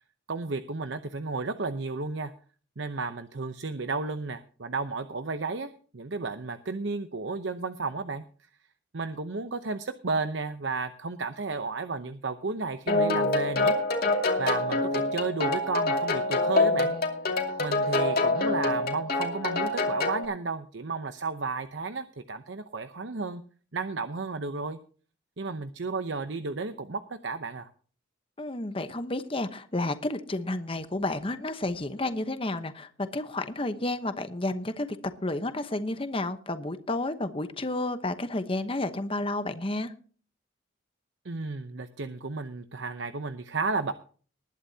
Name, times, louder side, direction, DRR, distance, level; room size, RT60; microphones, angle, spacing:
voice 1, 0.3-2.3 2.8-8.2 8.9-13.7 14.4-16.9 17.6-23.4 23.7-24.8 25.4-27.7 41.2-43.9, right 3 dB, 70° right, 10 dB, 0.8 m, -33 dB
sound 1, 12.9-20.2, left 2 dB, 50° left, 2.6 m, -26 dB
voice 2, 28.4-39.9, left 2 dB, 30° left, 10 dB, 1.0 m, -31 dB
20.0 x 11.5 x 2.8 m, 0.40 s
head